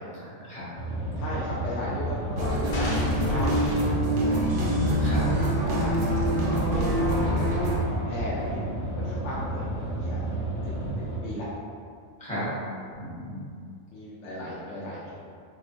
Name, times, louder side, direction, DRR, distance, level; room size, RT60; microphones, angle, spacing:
voice 1, 0.2-0.7 4.3-5.2 12.2-12.5 12.9-13.4, left 1 dB, 5° left, -12 dB, 0.8 m, -34 dB
sound 1, 0.8-11.2, right 1 dB, 35° left, 1.0 m, -32 dB
voice 2, 1.2-3.6 4.9-5.1 5.4-6.0 6.5-7.3 7.5-8.6 8.9-9.6 10.0-10.2 11.2-11.5 13.9-15.1, left 1 dB, 70° left, -7 dB, 0.8 m, -35 dB
sound 2, 2.4-7.8, right 1 dB, 65° right, 0.5 m, -25 dB
sound 3, 2.7-3.9 4.3-4.6 5.1-5.3, left 1 dB, 90° left, 1.1 m, -39 dB
2.6 x 2.1 x 3.8 m, 2.3 s
omnidirectional pair, 1.4 m